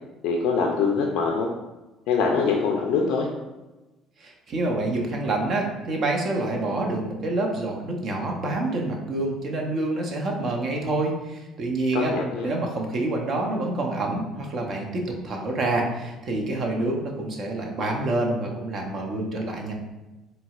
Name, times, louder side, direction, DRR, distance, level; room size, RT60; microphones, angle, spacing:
voice 1, 0.2-1.5 2.1-3.3 11.9-12.5, left 5 dB, 70° left, 0 dB, 0.3 m, -23 dB
voice 2, 4.2-12.1 12.4-19.7, right 2 dB, 55° right, 1 dB, 0.6 m, -27 dB
3.9 x 2.0 x 2.3 m, 1.1 s
hypercardioid pair, 60°, 0 cm